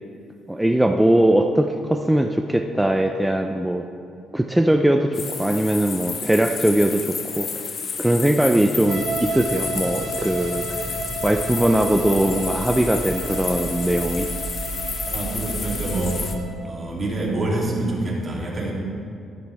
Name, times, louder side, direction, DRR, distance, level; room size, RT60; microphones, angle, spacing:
voice 1, 0.5-3.9 4.3-7.7 8.0-14.3, right 1 dB, 5° right, 4 dB, 0.5 m, -20 dB
sound 1, 5.1-16.4, left 6 dB, 50° left, 0.9 m, -31 dB
sound 2, 8.9-16.5, right 3 dB, 65° right, 1.4 m, -31 dB
voice 2, 15.0-16.2 16.6-18.7, right 2 dB, 35° right, -4 dB, 3.0 m, -26 dB
11.5 x 11.5 x 3.5 m, 2.6 s
cardioid pair, 90°, 0 cm